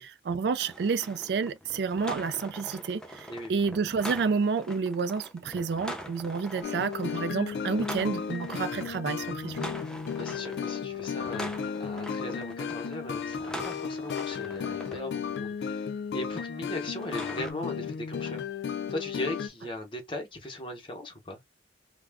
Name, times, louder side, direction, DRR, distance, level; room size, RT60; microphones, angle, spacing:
voice 1, 0.0-9.7, right 5 dB, 70° right, 0.3 m, -30 dB
sound 1, 0.6-15.0 16.9-17.5, equal, 5° left, 0.5 m, -43 dB
sound 2, 6.6-19.5, left 6 dB, 70° left, 0.3 m, -34 dB
voice 2, 10.2-18.4 18.9-21.4, left 1 dB, 30° left, 0.8 m, -38 dB
2.3 x 2.1 x 3.4 m
head